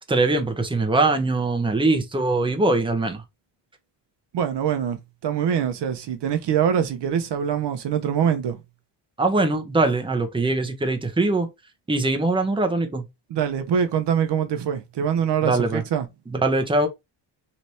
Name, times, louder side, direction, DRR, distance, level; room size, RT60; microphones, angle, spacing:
voice 1, 0.1-3.2 9.2-11.5 11.9-13.1 15.4-15.8 16.3-16.9, right 2 dB, 10° right, 0.9 m, -22 dB
voice 2, 4.3-8.6 13.3-16.1, right 8 dB, 70° right, 0.9 m, -24 dB
3.3 x 2.9 x 4.2 m
cardioid pair, 110°, 43 cm